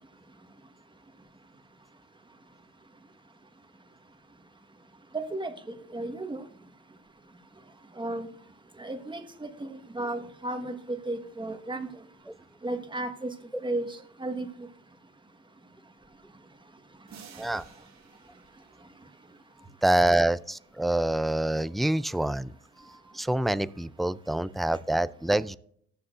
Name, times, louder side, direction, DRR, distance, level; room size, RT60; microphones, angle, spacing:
voice 1, 5.1-5.5 5.9-6.5 8.0-8.3 8.8-11.9 12.6-13.3 13.6-14.5, right 2 dB, 15° right, 7 dB, 1.4 m, -34 dB
sound 1, 17.1-19.8, right 7 dB, 65° right, 1.6 m, -53 dB
voice 2, 19.8-22.5 23.1-25.6, right 1 dB, ahead, 16 dB, 0.3 m, -26 dB
19.0 x 7.1 x 2.5 m, 0.64 s
cardioid pair, 90°, 30 cm